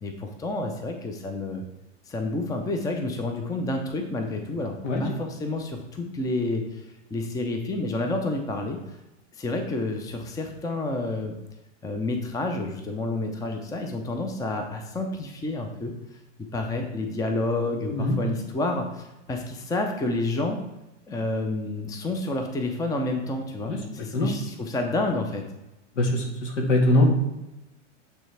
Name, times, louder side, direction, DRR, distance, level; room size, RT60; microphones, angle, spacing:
voice 1, 0.0-1.6 2.1-6.8 7.1-8.8 9.3-11.4 11.8-15.9 16.5-20.6 21.1-25.5, left 2 dB, 10° left, 4 dB, 0.6 m, -29 dB
voice 2, 4.8-5.2 17.9-18.2 23.7-23.8 24.1-24.3 26.0-27.1, left 1 dB, 70° left, 1 dB, 1.8 m, -22 dB
9.0 x 3.3 x 3.3 m, 0.97 s
hypercardioid pair, 105°, 38 cm